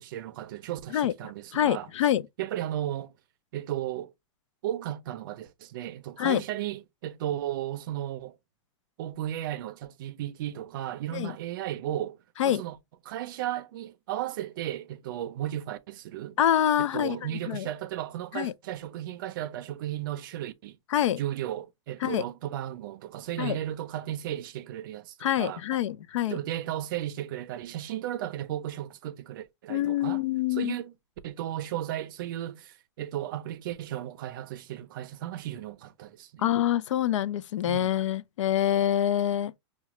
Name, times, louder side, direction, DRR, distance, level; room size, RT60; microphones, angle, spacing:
voice 1, 0.0-1.9 2.4-3.1 3.5-4.1 4.6-8.4 9.0-12.2 12.4-12.8 13.1-16.4 16.8-20.8 21.2-25.6 26.3-30.2 30.5-30.9 31.2-36.5 37.7-38.0, right 12 dB, 45° right, 0.5 m, -35 dB
voice 2, 1.5-2.2 6.2-6.4 11.1-11.3 12.4-12.6 16.4-17.2 17.5-17.7 18.3-18.5 20.9-21.2 22.0-22.2 23.4-23.6 25.2-26.4 29.7-30.7 36.4-39.5, left 11 dB, 90° left, 0.4 m, -26 dB
5.7 x 2.3 x 2.9 m
supercardioid pair, 170°, 15 cm